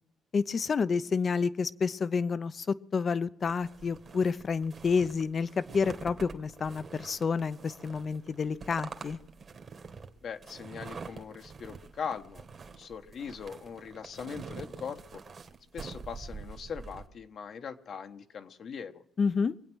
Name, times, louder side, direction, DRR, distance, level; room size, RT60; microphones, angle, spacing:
voice 1, 0.3-9.2 19.2-19.5, left 5 dB, 45° left, 15 dB, 0.7 m, -29 dB
sound 1, 3.4-17.1, right 5 dB, 45° right, 1.9 m, -46 dB
voice 2, 10.2-15.2 15.7-19.0, left 6 dB, 60° left, 8 dB, 1.2 m, -41 dB
24.0 x 8.8 x 6.2 m, 0.73 s
cardioid pair, 90°, 0 cm